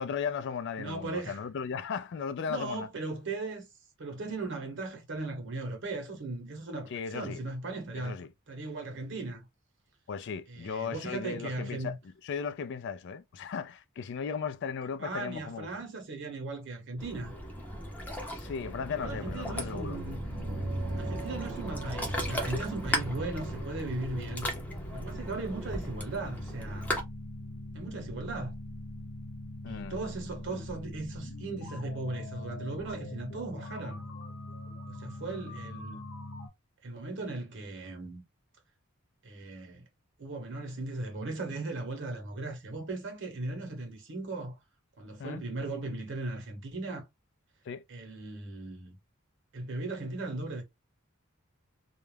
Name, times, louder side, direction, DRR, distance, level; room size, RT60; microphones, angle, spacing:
voice 1, 0.0-2.9 6.9-7.4 8.0-8.3 10.1-12.0 12.2-15.7 18.3-20.0 29.6-30.0 45.2-45.4 47.7-47.8, left 6 dB, 55° left, 0.3 m, -36 dB
voice 2, 0.8-1.4 2.5-3.7 4.0-9.5 10.5-12.0 15.0-17.3 18.9-20.2 21.0-24.5 24.9-26.9 27.7-28.5 29.7-34.0 34.9-36.0 36.8-38.2 39.2-39.8 40.2-44.6 45.0-47.0 47.9-49.0 49.5-50.6, right 2 dB, 60° right, 0.9 m, -37 dB
Ocean, 17.0-27.0, equal, 5° left, 0.6 m, -37 dB
sound 1, 19.0-36.5, left 1 dB, 90° left, 0.9 m, -42 dB
sound 2, 20.0-24.5, right 2 dB, 80° right, 0.6 m, -40 dB
2.4 x 2.1 x 3.1 m
head